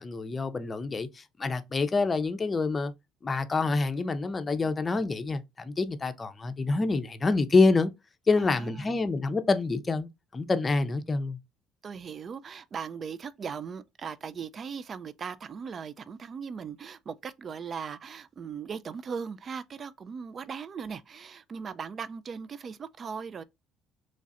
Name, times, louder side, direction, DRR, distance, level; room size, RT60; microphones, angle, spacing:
voice 1, 0.0-2.9 3.2-7.9 8.3-11.4, left 3 dB, 30° left, 0.5 m, -27 dB
voice 2, 8.4-8.9 11.8-23.4, right 6 dB, 45° right, 0.4 m, -38 dB
3.2 x 2.4 x 4.0 m
supercardioid pair, 70°, 0 cm